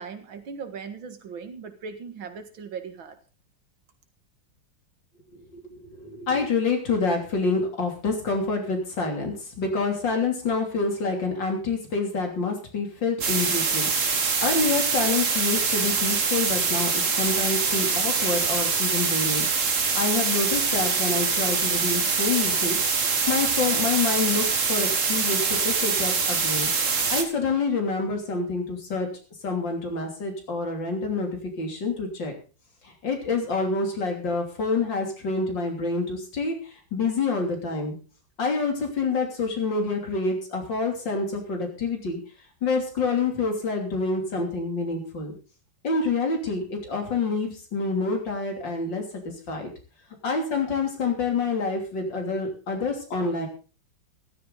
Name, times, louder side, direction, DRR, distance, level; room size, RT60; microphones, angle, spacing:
voice 1, 0.0-3.2, right 5 dB, 90° right, 8 dB, 2.4 m, -38 dB
voice 2, 5.3-13.9 14.4-19.5 19.9-26.7 27.1-29.1 29.4-31.3 31.6-32.3 32.8-36.5 36.9-38.0 38.4-42.2 42.6-45.3 45.8-49.0 49.5-49.7 50.2-53.5, left 4 dB, 70° left, 3 dB, 3.8 m, -27 dB
sound 1, 13.2-27.2, right 5 dB, 40° right, 1.8 m, -24 dB
14.5 x 13.0 x 3.9 m, 0.35 s
omnidirectional pair, 2.1 m